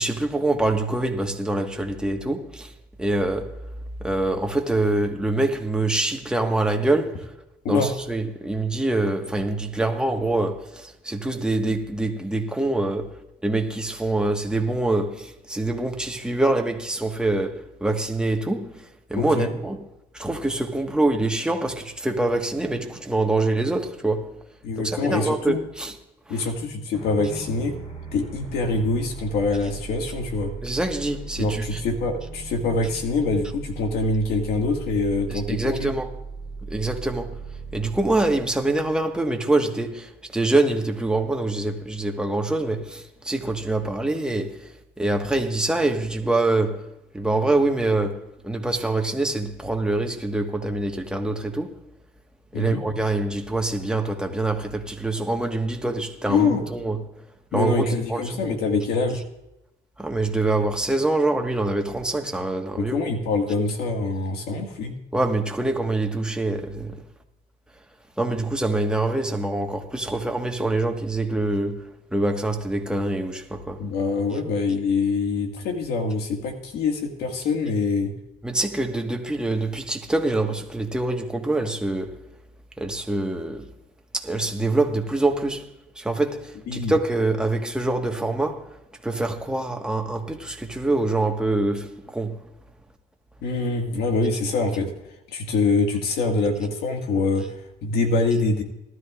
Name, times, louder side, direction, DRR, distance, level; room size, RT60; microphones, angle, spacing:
voice 1, 0.0-2.7 3.0-3.5 4.0-7.3 7.7-13.1 13.4-18.8 19.1-19.8 20.1-24.3 24.8-25.9 30.6-31.8 35.3-36.1 36.7-37.3 37.7-44.5 45.0-46.8 47.1-51.8 52.5-57.0 57.5-58.6 60.0-63.0 65.1-67.0 68.2-71.8 72.1-73.8 78.4-82.1 82.8-83.7 84.1-85.7 86.0-88.7 89.0-92.4, right 2 dB, 5° right, 1.5 m, -25 dB
voice 2, 19.2-19.5 24.6-25.6 26.3-27.7 28.1-30.5 31.4-35.9 52.5-52.8 56.3-56.6 57.5-59.2 62.8-64.9 73.8-78.1 86.7-86.9 93.4-94.9 95.3-98.6, left 3 dB, 75° left, 1.9 m, -24 dB
sound 1, 26.9-39.7, right 4 dB, 40° left, 5.0 m, -38 dB
19.0 x 12.5 x 2.5 m
cardioid pair, 100°, 17 cm